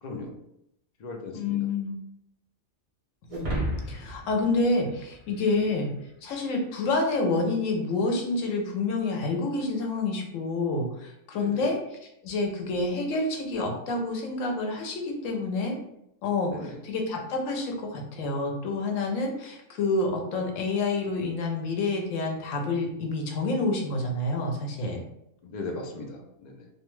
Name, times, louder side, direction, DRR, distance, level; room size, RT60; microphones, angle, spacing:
voice 1, 0.0-0.3 1.0-1.7 5.5-5.7 11.4-11.7 16.5-16.8 25.4-26.7, left 3 dB, 90° left, 1 dB, 0.3 m, -38 dB
voice 2, 1.3-2.0 3.3-5.9 6.2-11.8 12.2-15.8 16.2-25.0, left 3 dB, 70° left, 2 dB, 1.0 m, -28 dB
sound 1, 3.3-5.8, equal, 50° right, 0.4 m, -34 dB
2.4 x 2.2 x 3.0 m, 0.79 s
omnidirectional pair, 1.4 m